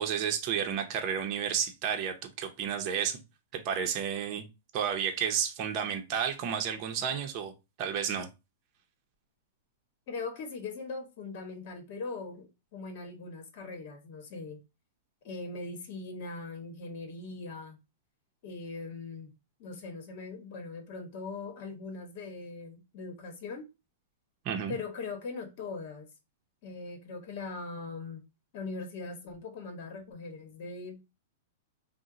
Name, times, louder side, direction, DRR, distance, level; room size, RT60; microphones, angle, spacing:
voice 1, 0.0-3.2 3.5-4.4 4.7-7.5 7.8-8.3 24.4-24.8, right 8 dB, 40° right, 0.6 m, -31 dB
voice 2, 10.1-14.6 15.2-17.8 18.4-19.3 19.6-23.6 24.7-26.1 26.6-28.2 28.5-31.1, left 3 dB, 55° left, 1.0 m, -40 dB
2.8 x 2.1 x 3.7 m
hypercardioid pair, 130°, 0 cm